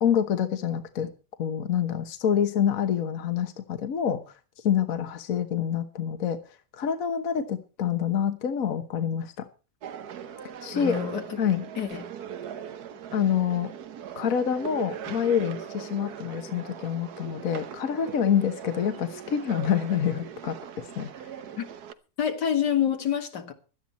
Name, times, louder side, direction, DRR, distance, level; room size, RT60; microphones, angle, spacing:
voice 1, 0.0-1.1 1.4-4.2 4.6-6.4 6.8-9.4 10.6-11.0 11.4-11.7 13.1-13.7 14.2-21.1, left 8 dB, 55° left, 1.6 m, -27 dB
sound 1, 9.8-21.9, right 8 dB, 70° right, 1.5 m, -40 dB
voice 2, 10.7-11.4 11.8-12.1 21.6-21.7 22.2-23.5, left 9 dB, 80° left, 2.4 m, -27 dB
17.0 x 12.0 x 4.2 m
omnidirectional pair, 1.8 m